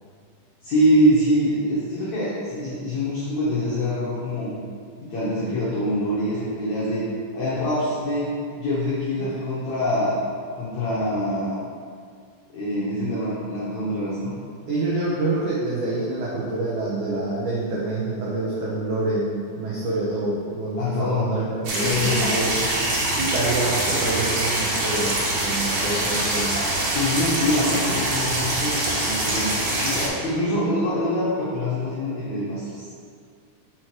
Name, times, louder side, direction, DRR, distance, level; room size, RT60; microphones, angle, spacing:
voice 1, 0.6-4.5 5.0-7.1 7.3-10.2 10.6-11.6 12.5-14.3 20.8-21.4 21.8-22.7 26.9-32.8, equal, 80° left, -8 dB, 1.6 m, -24 dB
voice 2, 14.7-22.5 23.1-26.6, right 2 dB, 85° right, -7 dB, 1.7 m, -26 dB
sound 1, 21.6-30.1, right 1 dB, 65° right, 2.2 m, -24 dB
6.2 x 4.4 x 4.6 m, 2.1 s
omnidirectional pair, 4.8 m